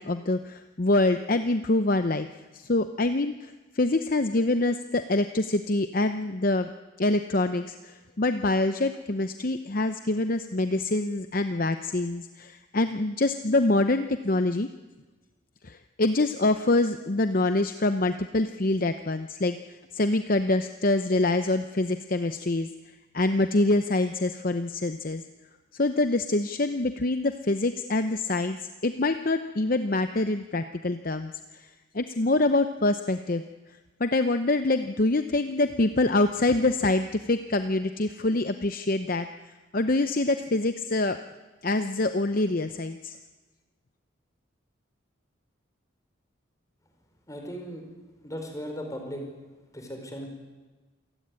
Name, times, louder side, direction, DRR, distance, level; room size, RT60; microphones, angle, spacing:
voice 1, 0.0-2.3 2.5-6.7 7.0-14.7 15.6-19.6 19.9-22.7 23.1-25.2 25.7-31.7 31.9-33.4 34.0-39.3 39.7-41.2 41.6-43.2, left 2 dB, 45° left, 9 dB, 0.8 m, -25 dB
voice 2, 47.3-47.8 48.2-49.2 49.7-50.3, equal, 15° left, 3 dB, 5.1 m, -37 dB
27.5 x 16.5 x 9.8 m, 1.2 s
head